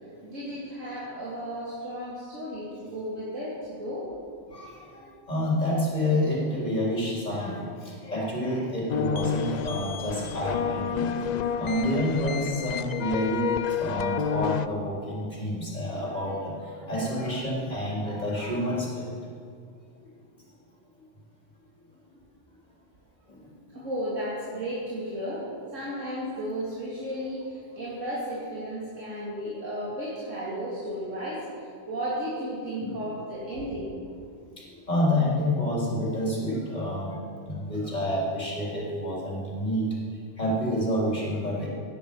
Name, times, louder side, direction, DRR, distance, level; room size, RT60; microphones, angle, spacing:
voice 1, 0.2-4.1 23.7-25.4 25.7-33.9, equal, 90° right, -7 dB, 2.9 m, -34 dB
voice 2, 4.5-11.1 11.6-13.5 13.8-19.1 23.3-23.4 32.8-33.0 34.6-37.1 37.5-39.8 40.4-41.7, left 1 dB, 35° left, -4 dB, 3.8 m, -28 dB
sound 1, 8.9-14.7, left 7 dB, 80° left, 0.3 m, -30 dB
17.0 x 9.9 x 5.5 m, 2.3 s
omnidirectional pair, 1.3 m